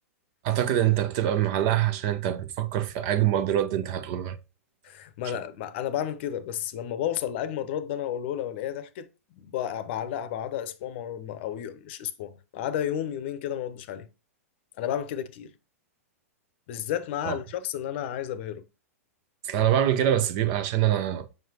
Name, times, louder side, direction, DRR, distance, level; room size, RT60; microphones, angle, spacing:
voice 1, 0.4-4.4 5.3-5.4 17.3-17.4 19.4-21.3, right 11 dB, 40° right, 0.7 m, -25 dB
voice 2, 4.8-9.1 9.3-14.1 14.8-15.5 16.7-18.6, left 10 dB, 45° left, 0.8 m, -32 dB
7.4 x 5.5 x 2.8 m
figure-of-eight pair, 105°, 8 cm